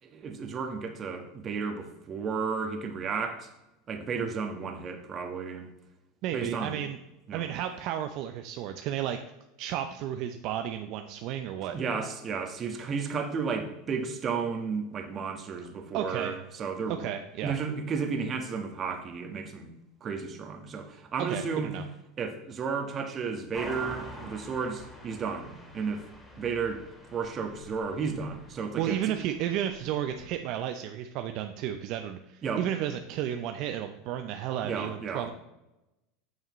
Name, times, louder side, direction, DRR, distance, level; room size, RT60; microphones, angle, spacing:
voice 1, 0.0-3.5 3.9-5.7 6.3-6.8 7.3-7.5 11.7-17.1 17.4-19.7 20.0-21.7 22.2-26.0 26.4-26.8 27.1-29.0 32.4-32.6 34.6-35.3, right 5 dB, 30° right, 5 dB, 1.3 m, -33 dB
voice 2, 6.2-7.0 7.3-9.2 9.6-11.8 15.9-16.4 16.9-17.5 21.3-21.8 28.8-35.3, right 10 dB, 55° right, 7 dB, 0.5 m, -33 dB
sound 1, 23.5-30.4, left 1 dB, 10° left, 1.9 m, -46 dB
9.3 x 6.5 x 3.1 m, 0.95 s
supercardioid pair, 115°, 0 cm